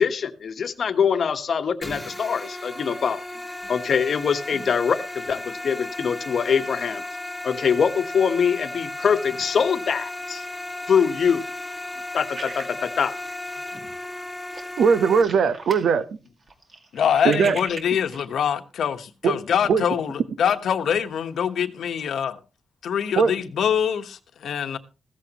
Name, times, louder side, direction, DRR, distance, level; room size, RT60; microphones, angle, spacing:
voice 1, 0.0-3.2 3.7-7.0 7.4-10.4 10.9-11.4 12.1-13.1, left 6 dB, 50° left, 1.1 m, -23 dB
sound 1, 1.8-15.2, left 1 dB, 5° right, 2.1 m, -35 dB
sound 2, 12.3-13.7 14.0-14.2 14.5-15.9 16.2-18.2, right 3 dB, 40° right, 2.2 m, -39 dB
voice 2, 14.8-16.1 17.2-17.6 19.2-19.4 19.7-19.9 23.1-23.3, right 6 dB, 70° right, 1.0 m, -19 dB
voice 3, 16.9-22.4 22.8-24.8, left 8 dB, 75° left, 1.1 m, -24 dB
15.5 x 14.0 x 3.0 m
wide cardioid pair, 160°, 0 cm